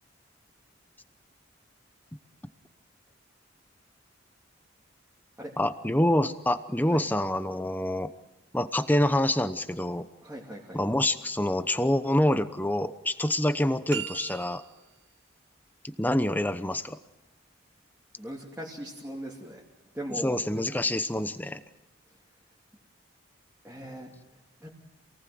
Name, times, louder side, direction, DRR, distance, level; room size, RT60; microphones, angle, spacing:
voice 1, 5.6-8.1 8.5-10.1 10.7-14.6 15.8-17.0 20.2-21.6, left 1 dB, 10° left, 11 dB, 0.9 m, -26 dB
voice 2, 10.2-10.8 18.2-19.6 19.9-20.4 23.6-24.7, equal, 10° right, -4 dB, 2.8 m, -39 dB
sound 1, 13.9-15.0, right 9 dB, 65° right, 1.4 m, -38 dB
28.0 x 18.5 x 7.8 m, 1.0 s
head